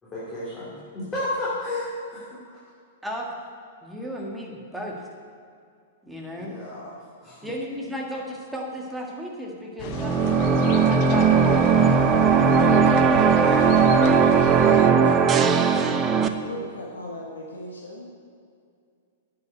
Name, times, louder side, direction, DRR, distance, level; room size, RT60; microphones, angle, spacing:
voice 1, 0.0-2.4 6.4-6.9 7.2-7.4, left 1 dB, 15° left, -9 dB, 3.1 m, -32 dB
voice 2, 3.8-5.0 6.0-6.9 7.4-10.3 10.7-11.7 12.7-12.8 13.1-13.7 14.7-15.1, equal, 5° right, -2 dB, 1.8 m, -34 dB
sound 1, 9.8-14.9, left 6 dB, 45° left, 0.8 m, -34 dB
sound 2, 9.9-16.3, right 6 dB, 25° right, 0.7 m, -18 dB
voice 3, 16.1-18.2, left 1 dB, 75° left, -1 dB, 1.4 m, -38 dB
9.3 x 6.6 x 8.1 m, 2.3 s
figure-of-eight pair, 105°, 0 cm